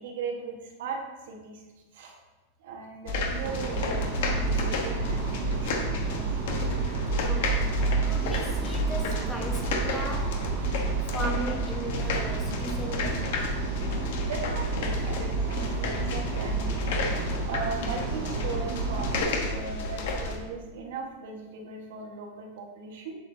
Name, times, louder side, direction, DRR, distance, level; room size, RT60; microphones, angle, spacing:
voice 1, 0.0-1.6 1.9-2.2 2.6-6.5 13.7-17.2 17.5-19.2 19.5-23.1, right 4 dB, 70° right, 1 dB, 1.4 m, -38 dB
sound 1, 3.1-20.4, left 1 dB, 65° left, 1.1 m, -30 dB
sound 2, 3.4-19.2, right 5 dB, 45° right, 0.7 m, -33 dB
voice 2, 7.2-7.7 8.1-10.4 11.1-13.3, right 1 dB, 5° left, -1 dB, 1.1 m, -37 dB
7.5 x 7.0 x 2.7 m, 1.2 s
supercardioid pair, 155°, 0 cm